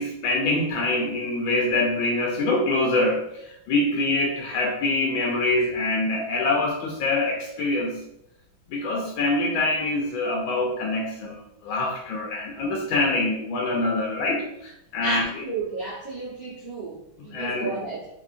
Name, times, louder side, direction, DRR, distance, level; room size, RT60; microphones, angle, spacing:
voice 1, 0.0-3.2 3.7-8.0 8.7-15.2 17.2-17.7, left 2 dB, 85° left, -1 dB, 1.5 m, -25 dB
voice 2, 15.0-18.1, right 3 dB, 45° right, -10 dB, 0.5 m, -32 dB
3.7 x 3.4 x 2.5 m, 0.80 s
omnidirectional pair, 2.1 m